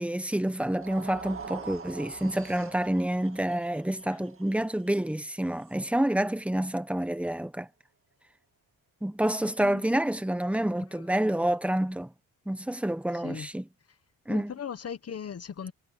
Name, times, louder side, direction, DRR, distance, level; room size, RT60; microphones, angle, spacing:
voice 1, 0.0-7.7 9.0-12.1 12.5-13.7 14.3-14.5, right 1 dB, 5° right, 1.2 m, -28 dB
sound 1, 0.6-6.9, right 5 dB, 35° right, 2.1 m, -45 dB
voice 2, 13.1-13.5 14.3-15.7, left 7 dB, 45° left, 1.1 m, -38 dB
cardioid pair, 120°, 36 cm